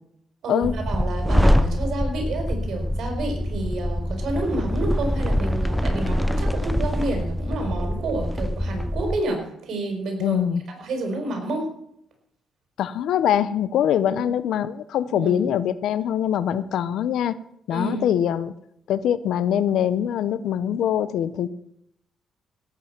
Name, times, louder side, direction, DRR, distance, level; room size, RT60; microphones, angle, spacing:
voice 1, 0.4-10.4 10.8-11.7 14.1-14.3 15.1-15.4 17.7-18.1, right 2 dB, 65° right, 3 dB, 4.9 m, -29 dB
sound 1, 0.6-9.2, equal, ahead, 0.6 m, -24 dB
voice 2, 10.2-10.6 12.8-17.4 17.7-18.5 18.9-21.5, left 9 dB, 75° left, 15 dB, 0.8 m, -23 dB
17.0 x 8.3 x 6.0 m, 0.75 s
cardioid pair, 90°, 0 cm